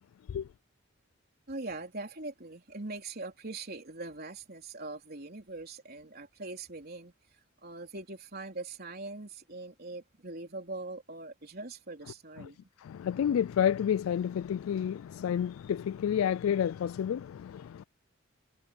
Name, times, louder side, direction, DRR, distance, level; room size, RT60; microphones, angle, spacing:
voice 1, 1.5-7.1 7.6-12.6, right 2 dB, 50° right, 3.7 m, -42 dB
voice 2, 12.8-17.8, left 9 dB, 80° left, 0.3 m, -30 dB
head